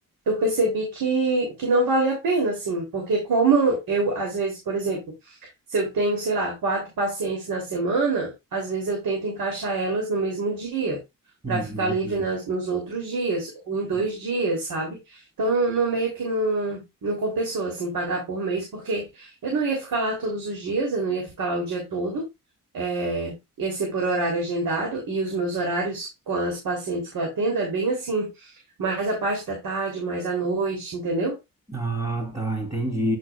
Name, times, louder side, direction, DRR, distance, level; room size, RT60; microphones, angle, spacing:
voice 1, 0.3-5.4 5.7-11.0 11.5-22.3 22.7-28.5 28.8-31.4, right 3 dB, 85° right, 3.2 m, -26 dB
voice 2, 11.4-12.3 13.9-14.0 31.7-33.2, right 2 dB, 20° right, 3.0 m, -28 dB
9.7 x 6.4 x 2.4 m
wide cardioid pair, 125°, 34 cm